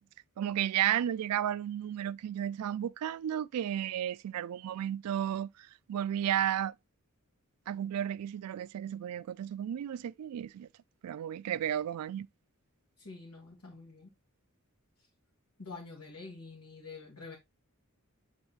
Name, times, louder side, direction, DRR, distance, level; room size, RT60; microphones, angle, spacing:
voice 1, 0.4-5.5 5.9-6.7 7.7-10.7 11.0-12.3, right 10 dB, 85° right, 0.3 m, -33 dB
voice 2, 13.0-14.1 15.6-17.4, left 4 dB, 85° left, 2.0 m, -47 dB
8.9 x 3.6 x 3.0 m
head